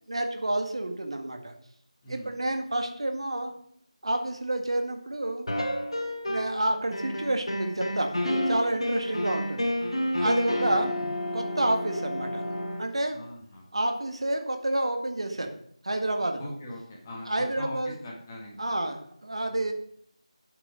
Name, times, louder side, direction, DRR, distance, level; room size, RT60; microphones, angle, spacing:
voice 1, 0.1-1.6 2.1-3.5 4.0-5.5 6.3-9.7 10.1-11.0 11.3-12.4 12.8-13.3 13.7-15.5 15.8-16.5 17.3-18.0 18.6-19.7, right 1 dB, 55° right, 5 dB, 1.8 m, -29 dB
sound 1, 5.5-6.6 6.9-12.8, left 1 dB, 55° left, 2.6 m, -30 dB
voice 2, 13.1-13.7 16.4-18.6 19.5-19.7, left 1 dB, 15° left, -2 dB, 2.0 m, -40 dB
8.7 x 8.0 x 5.1 m, 0.65 s
figure-of-eight pair, 165°, 3 cm